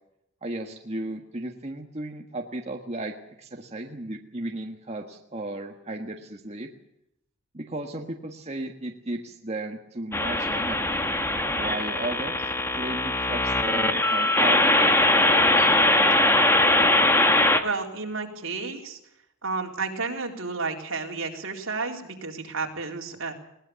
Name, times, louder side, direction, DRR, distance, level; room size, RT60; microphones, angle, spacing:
voice 1, 0.4-6.7 7.5-11.1 11.6-15.7, right 2 dB, 30° right, 2 dB, 1.6 m, -35 dB
sound 1, 10.1-17.6, left 2 dB, 10° left, 1.6 m, -21 dB
voice 2, 17.6-19.0 19.4-23.3, right 4 dB, 70° right, 2 dB, 3.9 m, -31 dB
21.0 x 19.0 x 7.0 m, 0.80 s
head